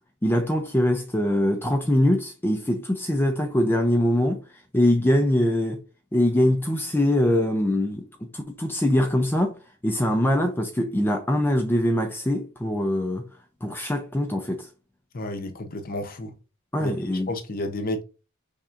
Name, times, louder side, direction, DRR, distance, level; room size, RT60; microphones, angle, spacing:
voice 1, 0.2-4.4 4.7-5.8 6.1-9.5 9.8-13.2 13.6-14.7 16.7-17.3, left 1 dB, 10° left, 0.4 m, -23 dB
voice 2, 15.1-16.3 16.8-16.9 17.3-18.0, left 1 dB, 45° left, 0.7 m, -31 dB
5.6 x 3.6 x 2.5 m
head